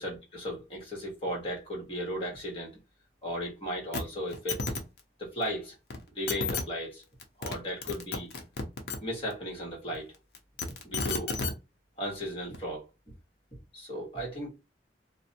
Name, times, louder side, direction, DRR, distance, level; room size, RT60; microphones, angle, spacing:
voice 1, 0.0-2.8 3.2-4.6 5.2-5.7 6.1-7.0 7.4-8.3 9.0-10.1 10.8-11.3 12.0-12.9 13.7-14.5, equal, 30° left, 1.2 m, -36 dB
sound 1, 3.9-4.0 4.3-4.8 5.9-6.0 6.3-6.6 7.2-7.6 7.8-9.0 10.3-11.5 12.5-12.6, left 4 dB, 60° left, 0.6 m, -32 dB
2.6 x 2.1 x 2.7 m
head